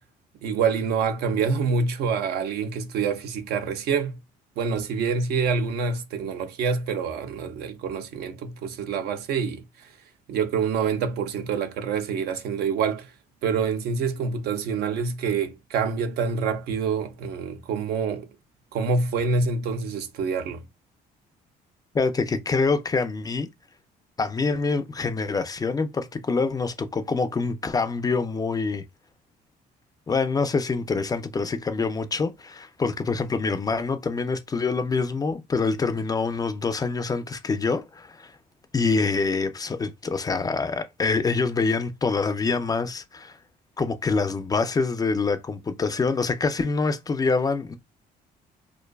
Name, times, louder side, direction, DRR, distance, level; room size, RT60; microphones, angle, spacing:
voice 1, 0.4-4.2 4.6-9.6 10.3-13.1 13.4-18.3 18.7-20.6, right 5 dB, 70° right, 0.5 m, -26 dB
voice 2, 21.9-23.5 24.2-28.8 30.1-38.3 38.7-43.4 43.8-47.8, left 4 dB, 20° left, 0.3 m, -25 dB
2.5 x 2.2 x 2.2 m
cardioid pair, 110°, 17 cm